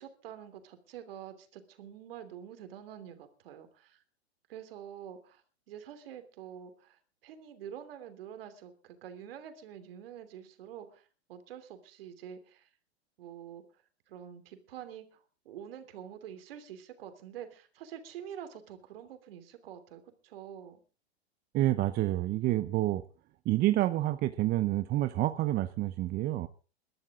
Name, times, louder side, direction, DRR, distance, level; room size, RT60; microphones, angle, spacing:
voice 1, 0.0-4.0 4.5-5.4 5.7-12.7 13.2-13.6 14.1-20.8, right 9 dB, 60° right, 9 dB, 3.1 m, -47 dB
voice 2, 21.5-23.0 23.5-26.5, right 15 dB, 30° right, 11 dB, 0.8 m, -28 dB
22.0 x 12.5 x 3.7 m, 0.36 s
hypercardioid pair, 110°, 33 cm